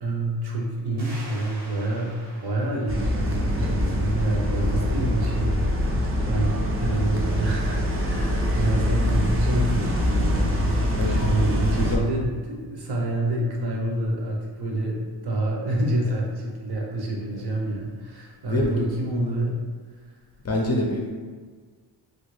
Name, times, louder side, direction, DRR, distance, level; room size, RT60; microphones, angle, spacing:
voice 1, 0.0-10.7 11.1-19.6, right 1 dB, 60° right, -1 dB, 0.7 m, -27 dB
sound 1, 1.0-4.3, right 1 dB, 80° right, 1.1 m, -46 dB
sound 2, 2.9-12.0, equal, 30° right, 0.4 m, -24 dB
voice 2, 20.4-21.1, left 1 dB, 35° left, -1 dB, 0.4 m, -26 dB
3.1 x 2.4 x 3.1 m, 1.5 s
wide cardioid pair, 125°, 46 cm